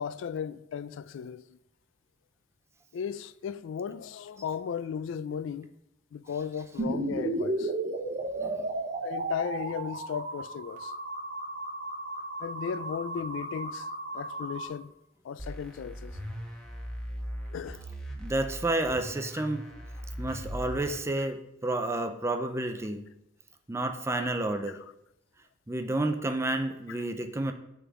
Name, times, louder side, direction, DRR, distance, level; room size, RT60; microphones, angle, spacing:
voice 1, 0.0-1.6 2.9-5.7 6.1-7.7 9.0-10.9 12.4-13.9 14.1-14.9 15.2-16.1 17.5-17.8 19.4-19.5, left 7 dB, 80° left, 0.3 m, -36 dB
sound 1, 6.8-14.7, right 2 dB, 40° right, 0.8 m, -34 dB
voice 2, 8.4-8.7 18.2-19.6 20.2-23.1 23.7-24.8 25.7-27.5, right 2 dB, 15° right, 0.4 m, -30 dB
sound 2, 15.4-21.0, equal, 5° left, 1.1 m, -39 dB
6.8 x 3.7 x 6.0 m
head